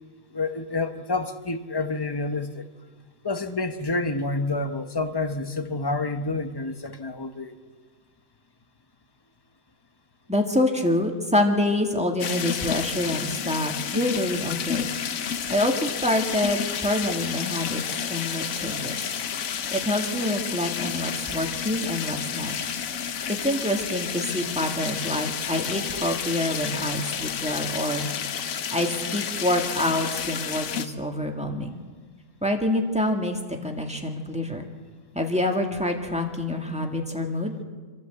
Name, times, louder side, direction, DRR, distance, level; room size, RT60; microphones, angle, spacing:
voice 1, 0.3-2.7 3.2-7.5, left 3 dB, 20° left, 9 dB, 0.7 m, -28 dB
voice 2, 10.3-14.9 15.5-17.8 18.1-19.0 19.7-22.6 23.3-28.1 28.7-31.8 32.4-34.6 35.1-37.5, left 1 dB, 5° right, 2 dB, 1.9 m, -26 dB
sound 1, 12.2-30.9, left 8 dB, 60° left, 1.2 m, -31 dB
26.5 x 13.0 x 8.0 m, 1.5 s
omnidirectional pair, 1.8 m